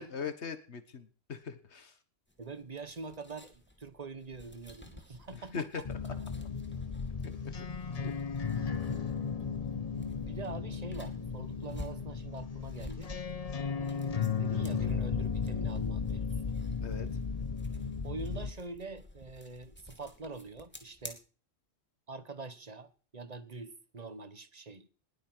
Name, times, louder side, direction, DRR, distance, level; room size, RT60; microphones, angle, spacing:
voice 1, 0.0-2.0 5.3-6.1 7.2-7.5 7.9-8.1 16.8-17.1, left 6 dB, 90° left, 1.7 m, -41 dB
sound 1, 2.3-21.1, left 1 dB, 10° left, 2.6 m, -52 dB
voice 2, 2.4-5.8 10.2-13.1 13.8-16.3 18.0-21.2 22.1-24.9, right 3 dB, 40° right, 1.2 m, -44 dB
sound 2, 5.8-18.5, left 6 dB, 40° left, 0.9 m, -35 dB
20.0 x 8.6 x 6.1 m
omnidirectional pair, 1.1 m